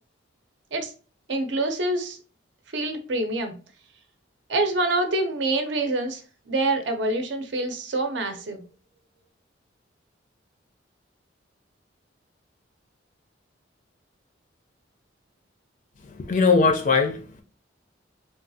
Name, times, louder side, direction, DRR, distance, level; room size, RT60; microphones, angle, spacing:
voice 1, 1.3-2.2 2.7-3.5 4.5-6.2 6.5-8.6, right 2 dB, 70° right, 0.6 m, -26 dB
voice 2, 16.1-17.4, left 4 dB, 40° left, 0.4 m, -21 dB
3.5 x 2.3 x 2.6 m
head